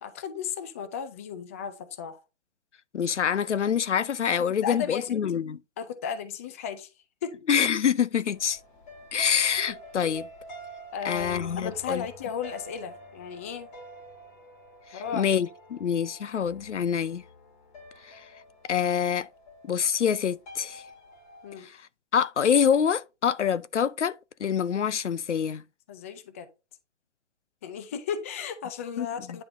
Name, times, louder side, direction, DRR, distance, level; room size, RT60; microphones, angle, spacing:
voice 1, 0.0-2.2 4.3-5.1 5.8-6.9 7.2-7.3 9.6-9.8 10.9-13.7 14.9-15.3 21.4-21.7 25.9-26.5 27.6-29.4, left 7 dB, 15° left, 0.4 m, -35 dB
voice 2, 2.9-5.6 7.5-8.6 9.1-10.3 11.0-12.1 14.9-17.2 18.1-18.2 18.6-19.3 19.6-20.8 21.6-21.8 22.1-25.6 29.0-29.2, left 8 dB, 85° left, 0.7 m, -26 dB
sound 1, 8.3-21.6, equal, 45° left, 2.8 m, -47 dB
9.7 x 3.8 x 4.2 m
hypercardioid pair, 140°, 35 cm